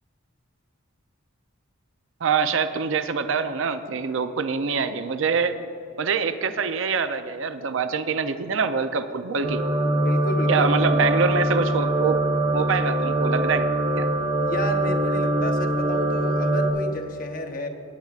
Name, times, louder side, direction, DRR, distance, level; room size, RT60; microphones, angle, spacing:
voice 1, 2.2-5.5 6.0-9.6 10.5-12.2 12.5-13.7 14.0-14.1, right 5 dB, 65° right, 10 dB, 0.5 m, -25 dB
sound 1, 9.4-16.7, right 1 dB, 80° right, 1.3 m, -23 dB
voice 2, 10.0-10.7 14.3-17.7, left 1 dB, 40° left, 4 dB, 0.9 m, -32 dB
18.5 x 9.3 x 2.4 m, 2.7 s
head